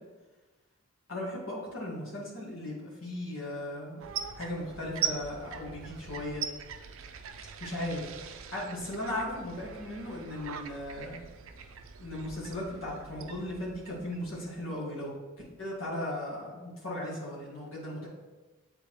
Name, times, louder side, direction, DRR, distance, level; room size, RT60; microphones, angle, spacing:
voice 1, 1.1-4.1 4.4-6.4 7.6-8.1 8.5-11.2 12.0-15.1 15.6-18.1, left 1 dB, 80° left, -6 dB, 1.8 m, -37 dB
sound 1, 4.0-14.8, right 8 dB, 70° right, 0.4 m, -41 dB
8.1 x 3.7 x 3.1 m, 1.2 s
head